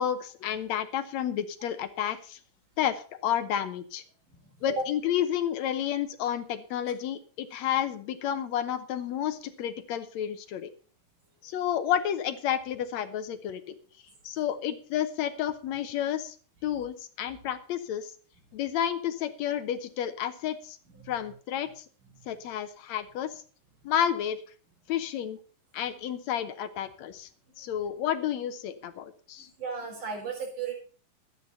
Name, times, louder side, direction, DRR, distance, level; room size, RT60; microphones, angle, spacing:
voice 1, 0.0-2.4 2.8-4.0 4.6-10.7 11.4-13.8 14.2-16.4 16.6-18.1 18.5-20.8 21.1-21.8 22.3-23.3 23.8-24.4 24.9-25.4 25.7-27.3 27.6-29.5, left 10 dB, 70° left, 11 dB, 2.0 m, -31 dB
voice 2, 4.4-4.8 20.9-21.1 29.4-30.7, right 4 dB, 90° right, 1 dB, 5.7 m, -35 dB
13.0 x 9.7 x 5.5 m, 0.40 s
omnidirectional pair, 3.5 m